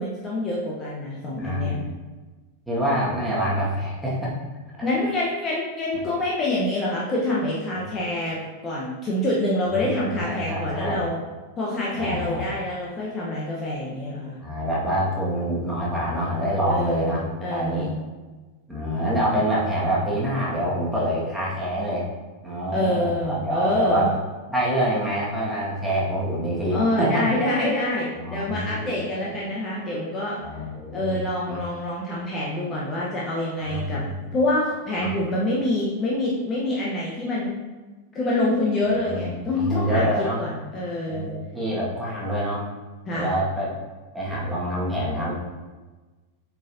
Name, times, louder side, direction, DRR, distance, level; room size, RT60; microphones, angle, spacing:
voice 1, 0.0-1.7 4.8-8.4 8.6-11.2 11.6-14.4 16.7-17.9 22.7-24.1 26.7-30.4 30.9-34.0 34.3-37.5 38.1-40.1 40.4-41.3 43.1-43.3, left 1 dB, 25° left, -5 dB, 1.1 m, -26 dB
voice 2, 1.4-2.0 2.7-4.3 9.7-11.0 12.0-12.5 14.4-17.9 18.7-22.1 22.4-24.1 24.5-27.3 28.1-28.9 29.2-29.3 30.4-31.2 31.5-31.6 33.6-34.3 35.0-35.1 39.0-40.4 41.1-42.6 43.1-43.7 44.1-45.3, equal, ahead, -7 dB, 1.9 m, -26 dB
7.5 x 4.7 x 2.8 m, 1.3 s
figure-of-eight pair, 90°, 0 cm